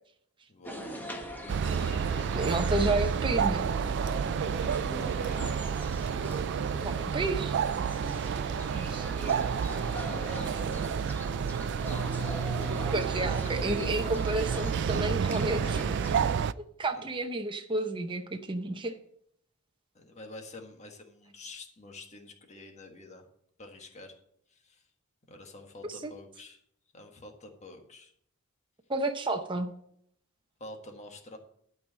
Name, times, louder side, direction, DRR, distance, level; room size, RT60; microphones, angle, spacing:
voice 1, 0.5-1.0 2.3-3.0 4.5-5.6 7.0-7.8 8.7-9.0 9.7-11.0 11.7-12.1 16.9-17.1 19.9-23.3 23.6-24.2 24.5-24.9 25.3-26.6 26.9-28.1 30.6-31.4, left 2 dB, 30° left, 3 dB, 1.5 m, -48 dB
sound 1, 0.6-16.3, equal, 10° left, 1.1 m, -41 dB
sound 2, 1.5-16.5, right 7 dB, 55° right, 0.3 m, -30 dB
voice 2, 2.3-3.7 6.8-7.6 8.9-9.0 12.9-15.8 16.8-19.0 26.0-26.1 28.9-29.7, right 2 dB, 20° right, 5 dB, 0.7 m, -31 dB
12.0 x 4.7 x 7.4 m, 0.69 s
head